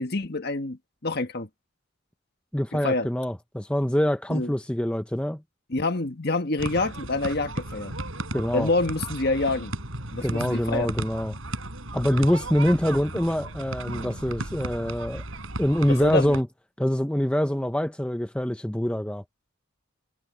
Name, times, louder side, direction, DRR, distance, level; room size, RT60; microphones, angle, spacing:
voice 1, 0.0-1.5 2.7-3.1 4.3-4.5 5.7-7.9 8.5-9.7 10.1-10.9 16.0-16.4, left 2 dB, 45° left, 1.5 m, -27 dB
voice 2, 2.5-5.4 8.3-8.7 10.2-11.4 11.9-15.2 15.6-16.5 16.8-19.2, equal, 5° left, 0.6 m, -25 dB
sound 1, 6.6-16.4, right 2 dB, 65° right, 5.8 m, -35 dB
head